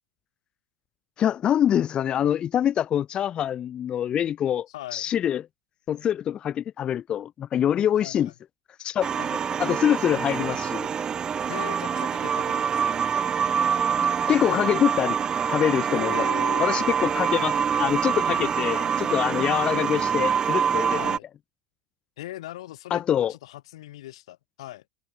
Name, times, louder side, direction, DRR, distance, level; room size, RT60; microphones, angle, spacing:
voice 1, 1.2-5.5 5.9-8.3 8.8-9.2 9.6-10.9 14.0-15.2 15.5-16.3 16.6-21.2 22.9-23.3, left 10 dB, 30° left, 0.4 m, -25 dB
voice 2, 4.7-5.0 8.0-8.1 9.2-9.3 11.5-13.0 15.9-16.8 18.3-18.9 20.9-21.2 22.2-23.0 23.3-24.8, left 15 dB, 80° left, 7.5 m, -39 dB
sound 1, 9.0-21.2, right 7 dB, 25° right, 1.1 m, -25 dB
supercardioid pair, 120°, 3 cm